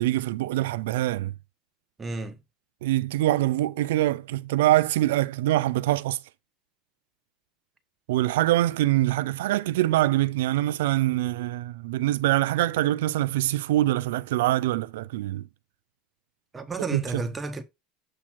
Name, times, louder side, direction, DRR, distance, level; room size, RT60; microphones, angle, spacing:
voice 1, 0.0-1.3 2.8-6.2 8.1-15.4 16.9-17.2, right 15 dB, 80° right, 0.4 m, -24 dB
voice 2, 2.0-2.4 16.5-17.6, right 3 dB, 20° right, 1.2 m, -32 dB
7.5 x 2.8 x 5.9 m
supercardioid pair, 100°, 0 cm